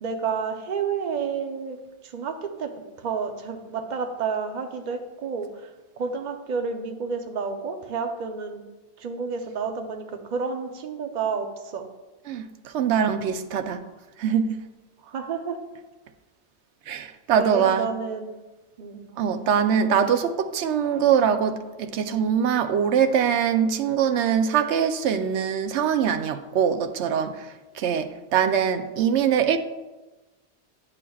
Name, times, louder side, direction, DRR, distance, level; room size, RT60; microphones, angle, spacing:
voice 1, 0.0-1.8 2.0-2.7 3.0-8.6 9.0-11.8 15.0-15.6 17.3-18.3 18.8-19.1, right 5 dB, 50° right, 0.7 m, -30 dB
voice 2, 12.3-13.8 14.2-14.6 16.9-17.9 19.2-29.6, right 8 dB, 85° right, 0.9 m, -23 dB
9.6 x 7.0 x 2.3 m
omnidirectional pair, 1.1 m